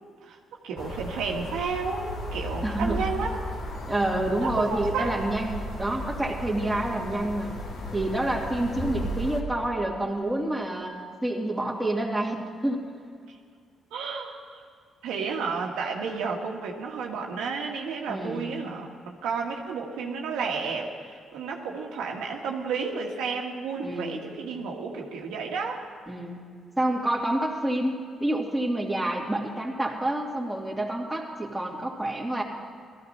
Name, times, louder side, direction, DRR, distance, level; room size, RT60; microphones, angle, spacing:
voice 1, 0.6-3.3 4.4-5.1 13.2-13.3 13.9-14.6 15.0-25.8, right 5 dB, 90° right, 0 dB, 1.7 m, -32 dB
sound 1, 0.8-9.4, left 1 dB, 70° left, 2.5 m, -35 dB
voice 2, 2.6-3.0 3.9-7.6 7.9-10.9 11.2-12.9 18.1-18.5 23.8-24.3 26.1-26.4 26.8-32.4, right 1 dB, 5° right, -2 dB, 2.6 m, -28 dB
18.5 x 14.0 x 4.3 m, 2.1 s
cardioid pair, 90°, 0 cm